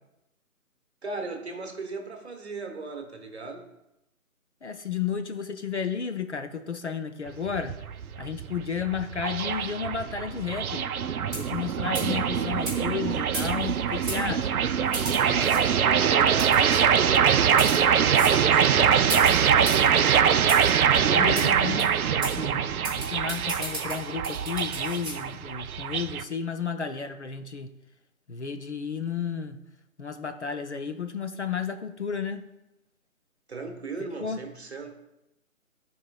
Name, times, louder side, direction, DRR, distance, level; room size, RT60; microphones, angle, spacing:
voice 1, 1.0-3.7 15.2-17.8 18.3-19.5 33.5-34.9, right 3 dB, 50° right, 1.1 m, -37 dB
voice 2, 4.6-7.8 8.2-10.9 11.3-14.6 21.0-22.7 22.9-27.7 28.3-29.6 30.0-32.4 34.2-34.4, left 6 dB, 55° left, 0.5 m, -32 dB
sound 1, 7.3-26.2, right 8 dB, 80° right, 0.5 m, -23 dB
sound 2, 11.2-11.6 11.9-12.2 12.6-12.8 13.3-13.7 14.1-14.2 14.9-15.6 16.4-16.8 17.4-17.8 18.1-18.4 19.1-19.9 20.5-20.7 21.3-21.5 21.8-21.9 22.2-22.3 22.8-25.2, right 1 dB, ahead, 2.5 m, -34 dB
13.0 x 4.5 x 2.3 m
figure-of-eight pair, 165°, 43 cm